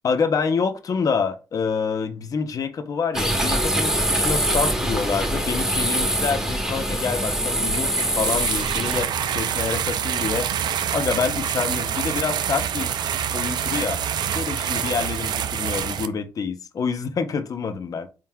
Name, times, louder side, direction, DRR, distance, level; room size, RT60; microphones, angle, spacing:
voice 1, 0.0-10.5 10.9-12.9 13.3-14.0 14.3-18.1, left 5 dB, 45° left, 0.6 m, -27 dB
sound 1, 3.1-9.0, right 1 dB, 10° right, 1.2 m, -24 dB
sound 2, 7.7-16.1, right 8 dB, 65° right, 0.4 m, -26 dB
4.3 x 3.6 x 2.2 m
cardioid pair, 100°, 8 cm